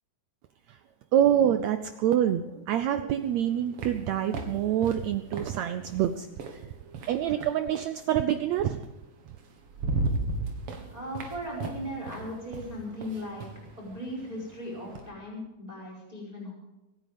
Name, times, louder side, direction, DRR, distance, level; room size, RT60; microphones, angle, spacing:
voice 1, 1.1-6.3 7.1-8.8, right 10 dB, 80° right, 10 dB, 1.6 m, -26 dB
sound 1, 3.1-7.7 8.9-9.0 9.4-15.1, right 2 dB, 50° right, 2.1 m, -36 dB
voice 2, 10.9-13.5 13.8-16.5, equal, 10° right, -3 dB, 4.8 m, -37 dB
25.5 x 9.4 x 5.2 m, 1.0 s
omnidirectional pair, 3.8 m